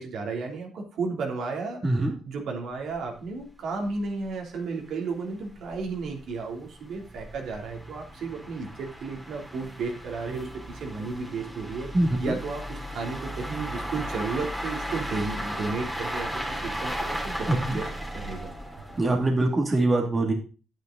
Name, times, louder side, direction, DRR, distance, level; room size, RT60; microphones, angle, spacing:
voice 1, 0.0-1.8 2.2-11.9 12.2-17.9 18.1-18.5, right 4 dB, 70° right, 1 dB, 3.1 m, -33 dB
voice 2, 1.8-2.2 11.9-12.4 17.5-17.8 19.0-20.3, right 2 dB, 30° right, 1 dB, 2.4 m, -23 dB
sound 1, 3.0-3.1 3.3-3.4 3.9-4.0 4.3-4.4 5.0-19.4, equal, 5° right, 3.1 m, -36 dB
9.3 x 9.0 x 3.9 m, 0.35 s
cardioid pair, 90°, 0 cm